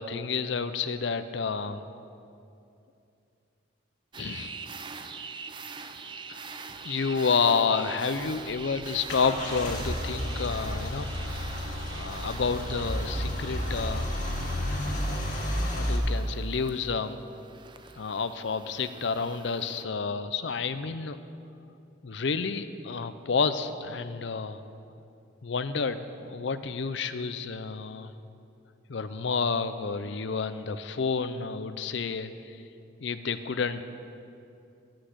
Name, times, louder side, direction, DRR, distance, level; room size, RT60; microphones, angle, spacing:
voice 1, 0.0-1.8 4.2-4.6 6.3-14.1 15.7-17.2 18.0-21.2 22.0-24.6 25.4-28.1 28.9-32.6 33.0-33.8, left 5 dB, 70° left, 12 dB, 0.5 m, -30 dB
sound 1, 4.1-19.8, right 4 dB, 25° right, 0.4 m, -43 dB
Car / Engine starting / Idling, 8.4-16.0, equal, 40° left, 1.8 m, -32 dB
13.5 x 6.3 x 8.0 m, 2.6 s
head